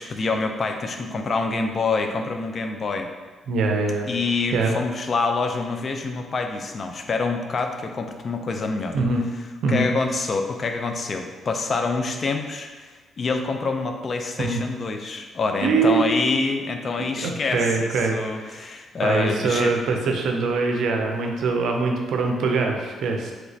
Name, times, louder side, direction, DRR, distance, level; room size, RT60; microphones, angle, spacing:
voice 1, 0.0-3.1 4.1-9.0 9.7-19.7, left 3 dB, 45° left, 4 dB, 0.3 m, -26 dB
voice 2, 3.5-4.1 4.5-4.7 8.9-9.3 9.6-9.9 14.4-14.6 15.6-16.3 17.0-18.6 19.0-23.3, right 3 dB, 75° right, 2 dB, 0.5 m, -23 dB
3.2 x 2.9 x 2.7 m, 1.4 s
cardioid pair, 90°, 0 cm